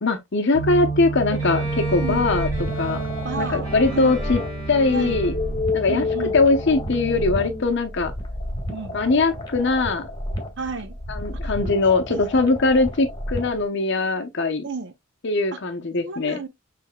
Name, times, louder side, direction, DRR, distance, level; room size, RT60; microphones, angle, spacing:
voice 1, 0.0-2.5 2.8-3.0 3.4-4.4 4.7-5.4 5.7-8.1 8.9-10.1 11.1-14.6 15.2-16.4, left 3 dB, 55° left, 0.8 m, -21 dB
sound 1, 0.5-7.6, right 1 dB, 35° left, 1.2 m, -29 dB
Bowed string instrument, 1.3-5.7, left 1 dB, 15° right, 3.3 m, -35 dB
sound 2, 1.6-13.6, equal, 20° left, 1.5 m, -33 dB
voice 2, 2.0-2.3 3.2-4.2 4.9-5.2 5.9-6.4 8.7-9.0 10.6-11.0 11.4-12.2 14.6-14.9 15.5-15.6 16.0-16.5, right 4 dB, 55° right, 0.8 m, -33 dB
6.7 x 3.4 x 2.2 m
head